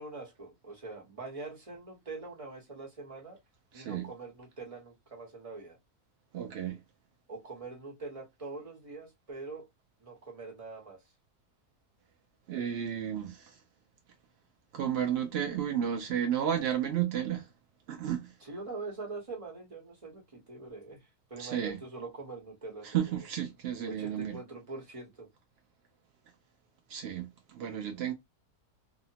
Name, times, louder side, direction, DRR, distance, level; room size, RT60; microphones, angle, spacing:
voice 1, 0.0-3.4 3.7-5.8 7.3-9.7 10.0-11.0 18.4-21.0 21.3-23.3 23.9-25.3, right 3 dB, 25° right, 0.9 m, -43 dB
voice 2, 3.7-4.1 6.3-6.8 12.5-13.6 14.7-17.5 17.9-18.3 21.4-21.8 22.8-24.4 26.9-28.1, right 9 dB, 85° right, 0.5 m, -32 dB
2.8 x 2.0 x 2.7 m
omnidirectional pair, 1.6 m